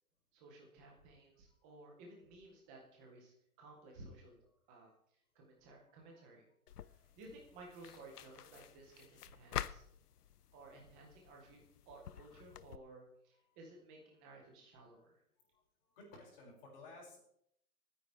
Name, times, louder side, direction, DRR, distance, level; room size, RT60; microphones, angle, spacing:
voice 1, 0.3-4.4 4.7-4.9 5.3-6.4 7.2-9.9 10.5-11.6 11.9-15.2, right 2 dB, 5° right, 0 dB, 0.5 m, -56 dB
sound 1, 6.7-12.8, left 10 dB, 85° left, 0.8 m, -48 dB
voice 2, 6.7-7.1 13.5-13.6 14.9-15.1 15.4-15.6 15.9-17.2, left 2 dB, 35° left, -2 dB, 6.0 m, -57 dB
28.5 x 9.5 x 3.4 m, 0.73 s
hypercardioid pair, 160°, 45 cm